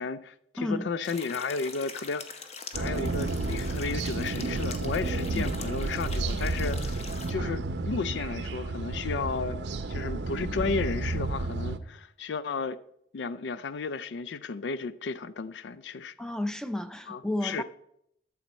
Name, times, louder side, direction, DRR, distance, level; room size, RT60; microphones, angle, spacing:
voice 1, 0.0-2.5 2.8-7.0 7.3-9.6 9.9-12.8 13.1-16.1 17.1-17.6, left 4 dB, 85° left, 0.4 m, -33 dB
voice 2, 0.6-0.9 5.4-5.5 16.2-17.6, left 1 dB, 5° left, 0.5 m, -32 dB
sound 1, 1.0-7.3, left 4 dB, 40° left, 0.8 m, -43 dB
sound 2, 2.7-11.8, right 2 dB, 85° right, 0.6 m, -31 dB
12.0 x 7.1 x 4.2 m
head